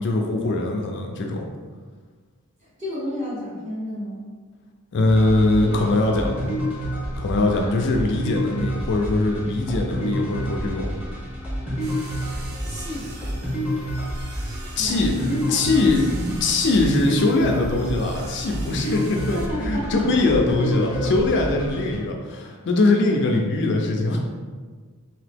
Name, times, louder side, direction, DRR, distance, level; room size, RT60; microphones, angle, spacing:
voice 1, 0.0-1.5 4.9-6.4 7.2-10.9 14.8-15.1 15.5-24.2, left 2 dB, 55° left, 2 dB, 0.4 m, -22 dB
voice 2, 2.6-4.2 7.4-7.8 12.6-13.2 14.8-16.3 18.8-19.0 19.3-20.4 20.8-21.1, left 1 dB, 30° right, -8 dB, 1.2 m, -31 dB
sound 1, 5.1-22.0, equal, 10° right, 0.8 m, -29 dB
sound 2, 11.8-19.5, right 3 dB, 50° right, 0.5 m, -44 dB
2.9 x 2.9 x 3.4 m, 1.5 s
head